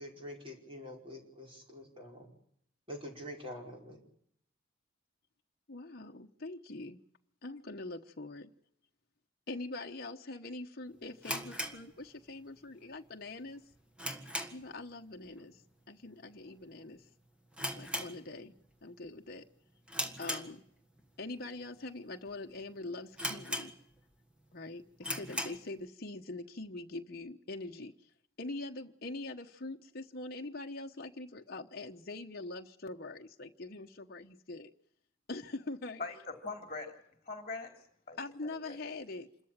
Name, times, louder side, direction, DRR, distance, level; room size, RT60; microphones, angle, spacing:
voice 1, 0.0-2.4 2.9-4.0, equal, 25° right, 5.0 m, -46 dB
voice 2, 5.7-7.0 7.4-8.5 9.5-13.6 14.5-15.6 15.9-17.0 17.8-18.5 18.8-19.5 20.2-20.6 21.2-23.7 24.5-28.1 28.4-34.7 35.3-36.0 38.2-39.3, left 2 dB, 50° left, 1.1 m, -43 dB
sound 1, 11.2-12.6 12.8-12.9 13.5-14.8 15.1-15.4 15.7-15.8 16.5-16.7 17.0-17.1 17.5-18.7 19.0-19.3 19.9-21.0 21.6-21.7 22.3-22.4 22.6-22.7 23.2-24.1 24.5-24.6 25.0-25.7, equal, 5° right, 1.6 m, -39 dB
voice 3, 36.0-37.0 37.3-37.7 38.1-38.8, left 3 dB, 30° left, 3.4 m, -42 dB
27.0 x 14.0 x 9.0 m
head